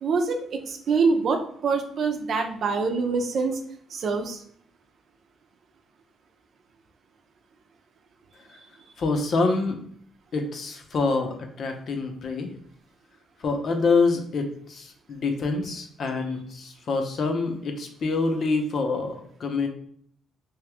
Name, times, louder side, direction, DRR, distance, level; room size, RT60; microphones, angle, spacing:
voice 1, 0.0-3.6 3.9-4.4, right 4 dB, 60° right, 4 dB, 0.6 m, -25 dB
voice 2, 9.0-9.8 10.3-12.5 13.4-19.7, left 3 dB, 55° left, 4 dB, 0.7 m, -26 dB
3.1 x 2.8 x 3.4 m, 0.62 s
cardioid pair, 90°, 0 cm